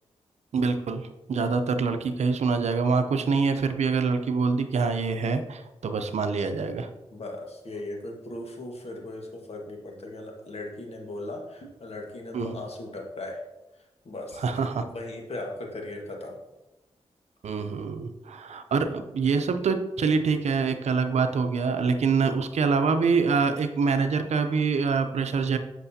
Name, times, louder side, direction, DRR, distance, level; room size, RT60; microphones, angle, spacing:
voice 1, 0.5-6.9 12.3-12.6 14.4-14.9 17.4-25.6, right 5 dB, 75° right, 8 dB, 0.6 m, -25 dB
voice 2, 7.1-13.4 14.0-14.4 14.8-16.4, left 2 dB, 60° left, 1 dB, 1.6 m, -38 dB
8.1 x 6.0 x 2.8 m, 1.0 s
cardioid pair, 55°, 12 cm